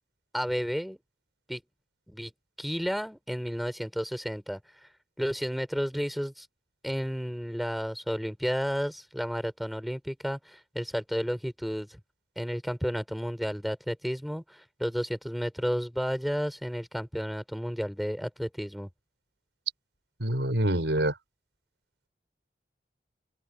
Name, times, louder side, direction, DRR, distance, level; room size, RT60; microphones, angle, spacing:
voice 1, 0.3-1.0 1.5-1.6 2.1-2.3 2.6-4.9 5.2-6.5 6.8-12.0 12.4-18.9, equal, ahead, 4.4 m, -32 dB
voice 2, 20.2-21.1, right 1 dB, 85° right, 5.7 m, -26 dB
head